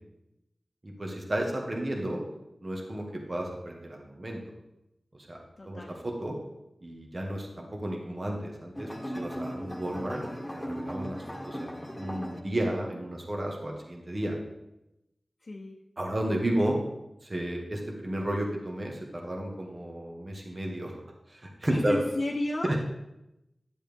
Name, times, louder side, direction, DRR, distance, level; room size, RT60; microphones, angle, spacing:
voice 1, 0.8-2.2 2.6-4.4 5.1-5.4 5.6-6.4 6.8-8.9 9.1-10.2 10.5-14.4 16.0-16.8 17.2-20.9 21.3-22.0 22.6-22.8, right 1 dB, 45° right, 0 dB, 1.7 m, -32 dB
voice 2, 5.6-5.9 15.4-15.8 21.7-22.7, left 2 dB, 60° left, -2 dB, 0.9 m, -33 dB
sound 1, 8.7-12.4, equal, 15° left, 1.6 m, -37 dB
11.0 x 7.4 x 3.5 m, 0.91 s
cardioid pair, 50°, 0 cm